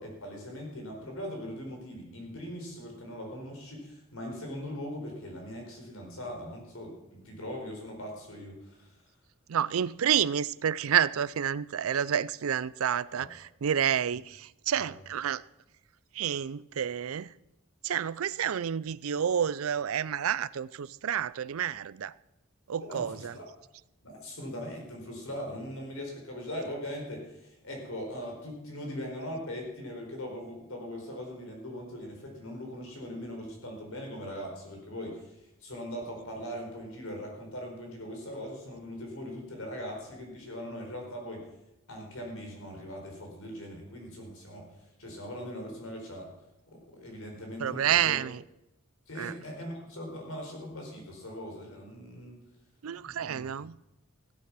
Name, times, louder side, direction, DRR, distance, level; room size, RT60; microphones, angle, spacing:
voice 1, 0.0-9.1 13.2-13.3 14.8-14.9 22.8-23.4 24.0-41.5 41.9-46.3 46.7-48.2 49.1-52.4 53.0-53.5, equal, 85° left, 4.4 m, -40 dB
voice 2, 9.5-15.4 16.1-17.3 17.8-22.1 22.7-23.3 47.6-48.4 49.2-49.3 52.8-53.7, right 9 dB, 90° right, 0.4 m, -29 dB
16.0 x 8.6 x 6.1 m
head